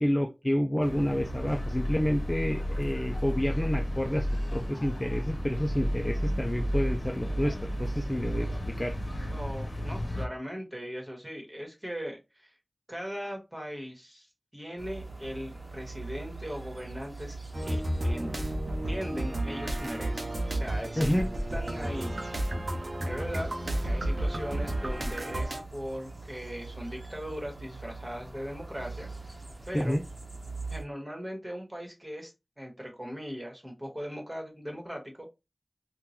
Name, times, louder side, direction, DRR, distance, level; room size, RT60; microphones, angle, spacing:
voice 1, 0.0-4.3 4.5-8.9 21.0-21.3 29.7-30.0, equal, 25° left, 0.4 m, -29 dB
sound 1, 0.8-10.3, equal, 55° left, 0.9 m, -32 dB
voice 2, 9.3-12.5 12.9-17.4 17.6-18.4 18.8-21.2 21.5-22.2 23.0-29.3 29.6-30.0 30.7-32.3 32.6-35.3, equal, 25° right, 1.3 m, -39 dB
sound 2, 14.8-30.8, right 3 dB, 40° right, 0.9 m, -43 dB
sound 3, 17.5-25.6, right 1 dB, 65° right, 0.7 m, -32 dB
3.7 x 2.3 x 2.9 m
wide cardioid pair, 50°, 0 cm